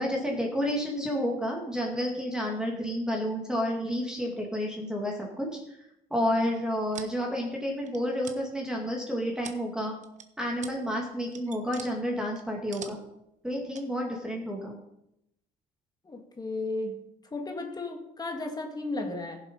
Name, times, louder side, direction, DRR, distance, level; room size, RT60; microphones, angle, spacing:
voice 1, 0.0-5.8 6.1-9.9 10.4-13.0 13.4-14.8, equal, 5° right, 0 dB, 2.2 m, -30 dB
sound 1, 6.6-7.2 7.8-8.4 8.9-9.7 10.0-10.2 10.6-10.8 11.1-11.9 12.4-13.2 13.7-13.9, right 7 dB, 45° right, 1.3 m, -44 dB
voice 2, 16.0-17.0 17.3-19.4, left 2 dB, 25° left, 3 dB, 2.1 m, -34 dB
15.5 x 7.3 x 5.4 m, 0.81 s
cardioid pair, 110°, 17 cm